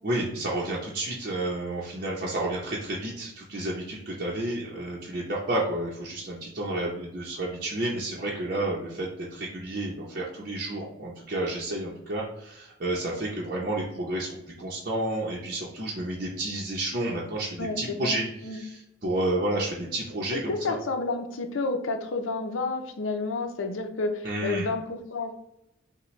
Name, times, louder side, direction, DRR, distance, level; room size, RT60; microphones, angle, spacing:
voice 1, 0.0-18.2 18.5-20.8 24.2-24.7, right 1 dB, 45° right, -5 dB, 0.7 m, -31 dB
voice 2, 17.6-18.6 20.3-25.4, left 3 dB, 85° left, 6 dB, 0.6 m, -30 dB
5.8 x 2.2 x 3.1 m, 0.81 s
head